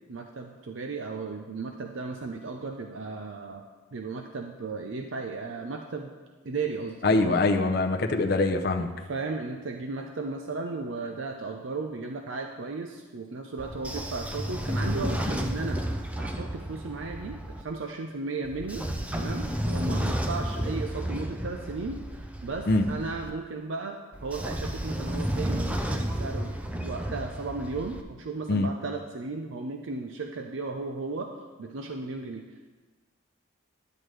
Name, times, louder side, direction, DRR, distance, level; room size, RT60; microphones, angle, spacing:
voice 1, 0.1-6.1 6.4-7.4 8.8-15.8 16.2-18.8 19.1-22.0 22.4-26.6 26.8-31.3 31.6-32.4, right 3 dB, 70° right, 4 dB, 0.5 m, -35 dB
voice 2, 7.0-8.9 22.7-22.8 28.5-28.7, left 2 dB, 50° left, 4 dB, 0.5 m, -23 dB
Train / Sliding door, 13.6-17.6 18.4-23.3 24.1-28.0, equal, 5° right, 0.4 m, -32 dB
10.5 x 7.8 x 3.2 m, 1.3 s
head